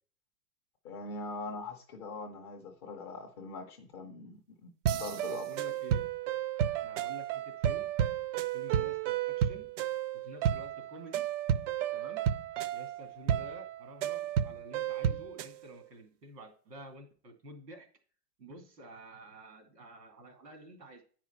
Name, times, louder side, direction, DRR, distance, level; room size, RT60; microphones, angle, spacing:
voice 1, 0.8-5.5, left 3 dB, 20° left, 3 dB, 0.4 m, -42 dB
sound 1, 4.9-15.6, right 10 dB, 50° right, 0.5 m, -32 dB
voice 2, 5.3-6.1 6.8-7.9 8.5-9.7 10.1-11.2 11.9-12.2 12.7-17.9 18.4-21.0, right 1 dB, 90° right, 4 dB, 2.7 m, -50 dB
9.0 x 4.9 x 4.3 m, 0.42 s
hypercardioid pair, 130°, 48 cm